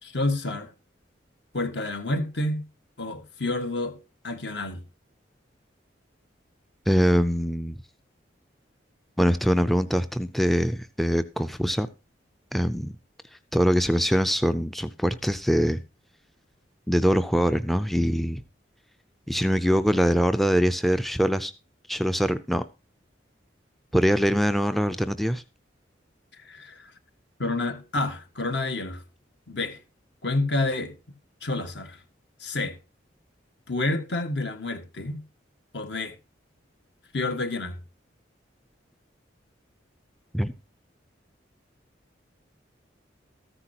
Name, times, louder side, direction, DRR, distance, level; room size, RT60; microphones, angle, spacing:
voice 1, 0.0-0.7 1.5-2.6 3.0-4.8 26.3-26.9 27.4-29.0 29.5-29.8 30.2-30.9 31.4-32.0 32.4-32.8 33.7-35.2 35.7-36.1 37.1-37.8, left 2 dB, 65° left, 1.7 m, -29 dB
voice 2, 6.9-7.8 9.2-11.9 12.5-12.9 13.5-15.8 16.9-18.4 19.3-21.5 21.9-22.6 23.9-25.4 40.3-40.5, equal, ahead, 0.4 m, -23 dB
14.0 x 9.9 x 2.9 m
head